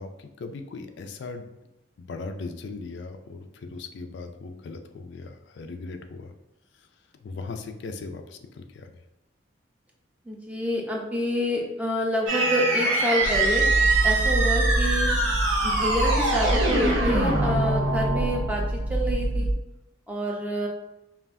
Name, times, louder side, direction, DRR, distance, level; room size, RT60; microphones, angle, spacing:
voice 1, 0.0-1.5 2.0-6.3 7.2-8.4 8.7-8.9, left 3 dB, 65° left, 6 dB, 0.3 m, -38 dB
voice 2, 10.3-13.7 14.0-15.1 15.6-19.5 20.1-20.7, equal, 10° right, -1 dB, 0.5 m, -28 dB
sound 1, 12.3-18.8, right 2 dB, 80° right, 1.2 m, -24 dB
sound 2, 13.2-19.5, right 1 dB, 60° right, 0.4 m, -27 dB
5.4 x 2.5 x 2.5 m, 0.94 s
head